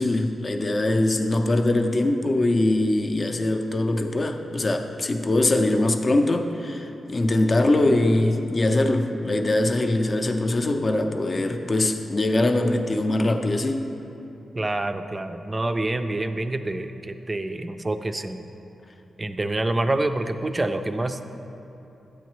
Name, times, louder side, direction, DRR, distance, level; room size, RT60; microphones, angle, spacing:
voice 1, 0.0-13.9, left 2 dB, 35° left, 5 dB, 0.5 m, -22 dB
voice 2, 14.6-18.4 19.2-21.4, right 2 dB, 25° right, 8 dB, 0.4 m, -27 dB
10.0 x 8.1 x 3.1 m, 2.9 s
cardioid pair, 90°, 0 cm